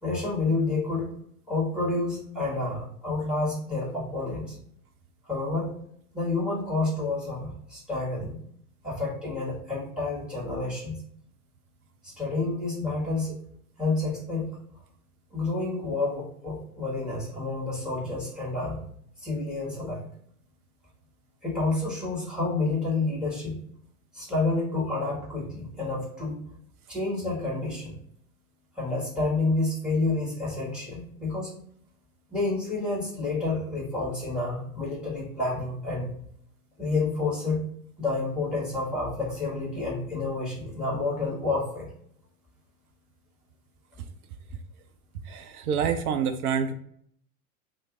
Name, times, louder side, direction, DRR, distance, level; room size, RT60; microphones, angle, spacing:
voice 1, 0.0-1.1 1.5-4.5 5.3-5.7 6.1-8.4 8.8-11.0 12.0-13.4 13.8-14.6 15.3-18.9 19.2-20.1 21.4-23.6 24.1-26.4 26.9-28.0 28.8-31.5 32.3-36.1 36.8-37.7 38.0-41.9, left 3 dB, ahead, -4 dB, 1.4 m, -29 dB
voice 2, 45.2-46.7, right 7 dB, 75° right, 8 dB, 0.6 m, -27 dB
3.1 x 2.0 x 3.6 m, 0.65 s
figure-of-eight pair, 90°, 45 cm